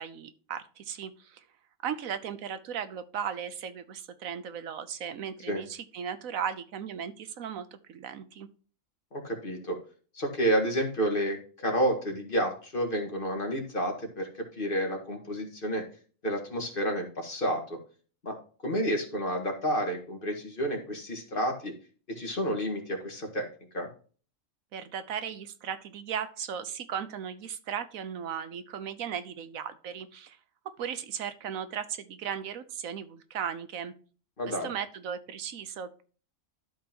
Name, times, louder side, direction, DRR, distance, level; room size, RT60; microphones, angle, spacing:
voice 1, 0.0-1.4 1.8-8.5 24.7-30.4 30.8-33.9 34.4-36.0, right 8 dB, 90° right, 12 dB, 1.3 m, -36 dB
voice 2, 9.1-9.8 10.1-15.8 16.2-17.8 18.2-18.4 18.6-21.7 22.1-23.5 23.7-23.9 34.4-34.7, equal, 40° left, 3 dB, 2.0 m, -30 dB
12.5 x 5.8 x 2.9 m, 0.40 s
omnidirectional pair, 1.4 m